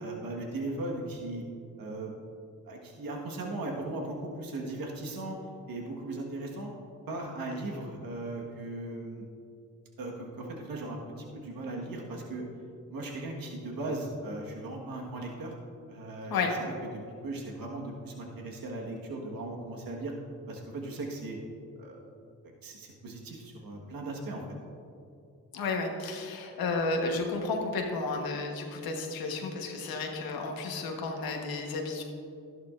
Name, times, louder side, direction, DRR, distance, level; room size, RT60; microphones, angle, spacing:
voice 1, 0.0-1.4 1.8-2.2 2.6-5.3 5.7-6.7 7.1-9.2 10.0-12.4 12.9-15.5 15.9-16.7 17.2-20.1 20.5-21.4 21.8-22.0 22.6-24.4, right 2 dB, 75° right, 0 dB, 1.5 m, -38 dB
voice 2, 25.5-32.0, left 3 dB, 85° left, 2 dB, 1.3 m, -32 dB
12.5 x 11.0 x 2.5 m, 2.6 s
supercardioid pair, 50°, 35 cm